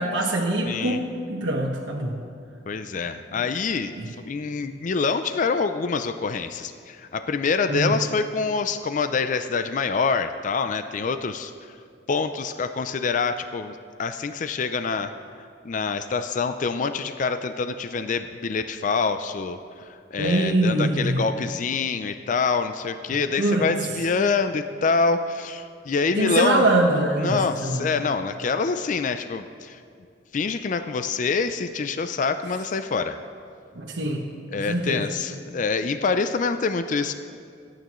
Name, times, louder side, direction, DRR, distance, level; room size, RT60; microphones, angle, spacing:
voice 1, 0.0-2.1 3.9-4.1 7.7-8.0 20.2-21.3 23.4-23.7 26.1-27.9 33.7-34.2 34.6-35.1, right 1 dB, 90° right, -3 dB, 1.2 m, -23 dB
voice 2, 0.7-1.0 2.7-3.9 4.3-11.5 12.1-15.1 15.6-19.6 20.1-26.6 27.2-29.8 30.3-33.2 34.5-37.1, left 4 dB, 45° left, 9 dB, 0.4 m, -26 dB
27.0 x 9.1 x 3.1 m, 2.3 s
head